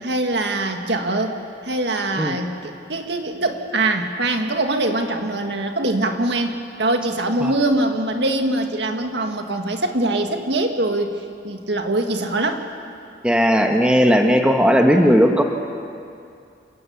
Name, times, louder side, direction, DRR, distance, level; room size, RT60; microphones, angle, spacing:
voice 1, 0.0-11.1 11.4-12.7, right 2 dB, 65° right, 5 dB, 1.8 m, -23 dB
voice 2, 13.2-15.4, equal, 5° right, 3 dB, 1.1 m, -16 dB
28.0 x 17.5 x 7.1 m, 2.5 s
head